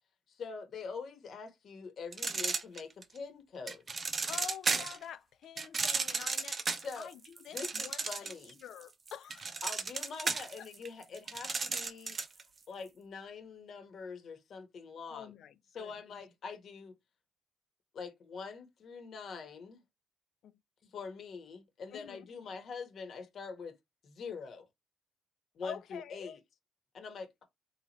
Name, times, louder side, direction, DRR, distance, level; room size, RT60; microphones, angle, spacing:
voice 1, 0.3-3.8 6.8-7.1 7.5-8.6 9.6-12.2 12.7-15.3 15.7-16.9 17.9-19.8 20.8-23.7 24.0-24.7 25.5-26.4 26.9-27.4, left 5 dB, 60° left, 1.1 m, -44 dB
sound 1, 2.1-3.2 3.7-5.0 5.6-8.5 8.8-12.4, right 4 dB, 40° right, 0.5 m, -34 dB
voice 2, 4.3-8.3 8.6-9.6 10.6-10.7 15.1-15.9 20.4-20.5 21.9-22.3 25.6-26.4, left 9 dB, 75° left, 0.4 m, -47 dB
3.7 x 2.9 x 3.0 m
cardioid pair, 90°, 0 cm